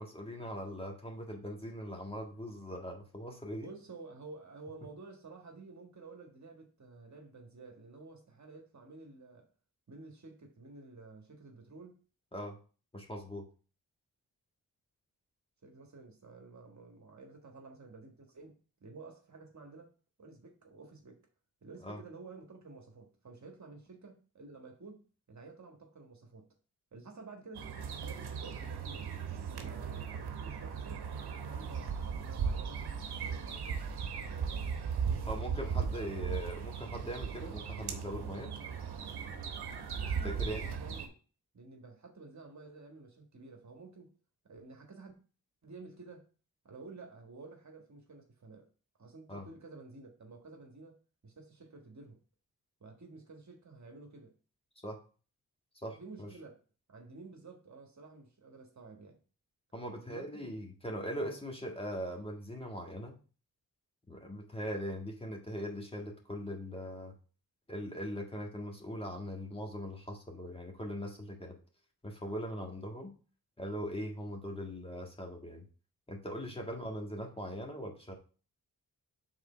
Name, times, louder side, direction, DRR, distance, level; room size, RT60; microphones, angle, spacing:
voice 1, 0.0-3.7 12.3-12.6 12.9-13.5 21.8-22.0 35.3-38.5 40.2-40.7 49.3-49.4 54.8-55.0 55.8-56.3 59.7-63.2 64.1-67.1 67.7-71.6 72.0-73.1 73.6-75.7 76.1-78.1, equal, 15° left, 1.8 m, -40 dB
voice 2, 3.6-9.5 9.9-12.0 15.6-21.2 21.6-26.5 26.9-29.2 29.6-31.1 31.4-32.8 33.1-33.8 34.1-35.4 35.7-36.4 40.0-41.2 41.5-44.1 44.4-45.1 45.6-46.3 46.6-48.7 49.0-51.0 51.2-52.2 52.8-54.3 56.0-56.6 56.9-59.2 59.9-60.5 61.1-61.4 76.7-76.8, right 3 dB, 45° right, 1.5 m, -51 dB
sound 1, 27.5-41.1, right 6 dB, 85° right, 0.9 m, -37 dB
4.9 x 4.1 x 5.5 m
cardioid pair, 50°, 38 cm